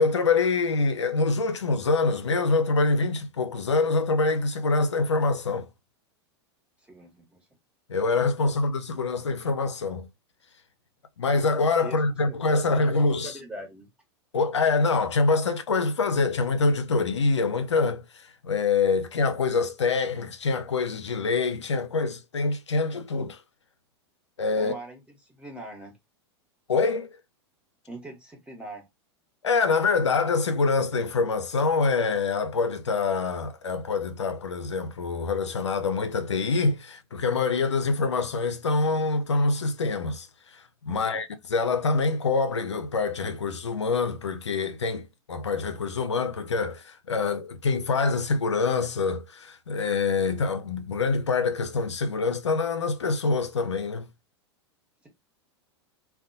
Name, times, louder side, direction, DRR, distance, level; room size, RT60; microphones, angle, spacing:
voice 1, 0.0-5.7 7.9-10.1 11.2-13.3 14.3-23.4 24.4-24.7 26.7-27.1 29.4-40.3 40.5-54.1, left 4 dB, 90° left, 0.4 m, -25 dB
voice 2, 6.8-7.4 11.8-13.9 24.6-26.0 27.9-28.9 40.9-41.2, right 1 dB, 10° right, 1.1 m, -42 dB
2.5 x 2.2 x 2.5 m
hypercardioid pair, 95°, 14 cm